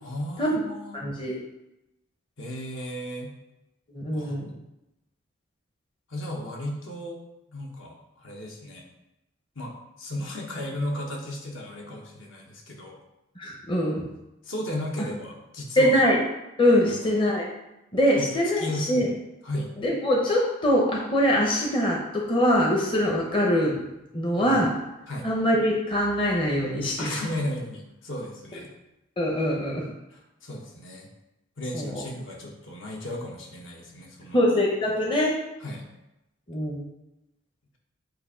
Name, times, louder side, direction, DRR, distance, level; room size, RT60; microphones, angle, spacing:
voice 1, 0.0-1.0 2.4-3.3 4.1-4.4 6.1-7.2 7.5-8.8 9.5-13.0 14.4-16.0 16.8-17.2 18.2-18.3 18.6-19.1 19.4-19.7 24.4-24.6 25.1-25.3 27.0-28.7 30.1-31.1 31.6-34.4 35.6-35.8, left 1 dB, 65° left, 0 dB, 1.1 m, -35 dB
voice 2, 0.9-1.4 3.9-4.5 13.4-14.1 15.8-16.2 16.6-17.5 17.9-19.1 19.8-23.8 24.1-24.7 25.2-27.2 29.2-29.9 31.7-32.0 34.3-35.4 36.5-36.8, equal, 25° left, -2 dB, 0.7 m, -23 dB
7.7 x 2.6 x 4.9 m, 0.94 s
head